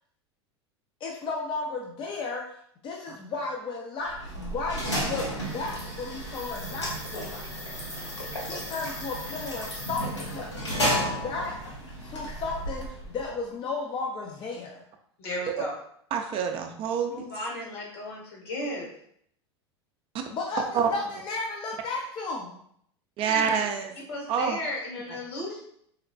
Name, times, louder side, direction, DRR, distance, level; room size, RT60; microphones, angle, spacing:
voice 1, 1.0-2.4 2.8-7.4 8.4-11.5 12.0-14.8 20.3-22.6, left 3 dB, 35° left, -1 dB, 0.5 m, -34 dB
sound 1, 4.1-13.4, equal, 90° left, 1.0 m, -33 dB
voice 2, 15.2-15.7 17.1-18.9 23.3-23.6 24.1-25.6, left 1 dB, 65° left, -2 dB, 1.4 m, -35 dB
voice 3, 16.1-17.1 20.7-20.9 23.2-23.9 24.3-24.6, right 7 dB, 40° right, 5 dB, 0.4 m, -26 dB
4.1 x 2.1 x 2.6 m, 0.68 s
hypercardioid pair, 85°, 14 cm